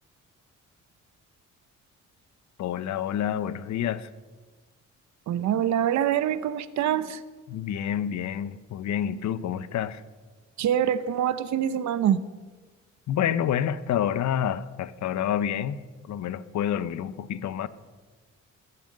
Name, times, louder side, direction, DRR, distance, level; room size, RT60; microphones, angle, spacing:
voice 1, 2.6-4.1 7.5-10.0 13.1-17.7, left 9 dB, 65° left, 0.8 m, -28 dB
voice 2, 5.3-7.2 10.6-12.2, right 10 dB, 65° right, 0.8 m, -25 dB
15.0 x 11.0 x 6.5 m
cardioid pair, 90°, 30 cm